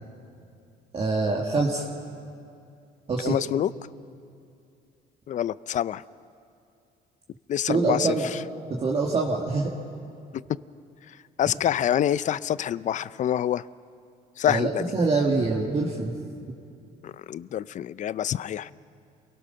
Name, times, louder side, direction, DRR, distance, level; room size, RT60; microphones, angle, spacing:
voice 1, 0.9-1.9 3.1-3.4 7.7-8.3 8.7-9.8 14.5-16.1, right 3 dB, 35° right, -2 dB, 2.1 m, -25 dB
voice 2, 3.2-3.7 5.3-6.0 7.5-8.4 11.4-13.6 14.4-14.9 17.0-18.7, left 10 dB, 45° left, 18 dB, 0.5 m, -26 dB
28.5 x 18.0 x 5.7 m, 2.5 s
cardioid pair, 110°, 17 cm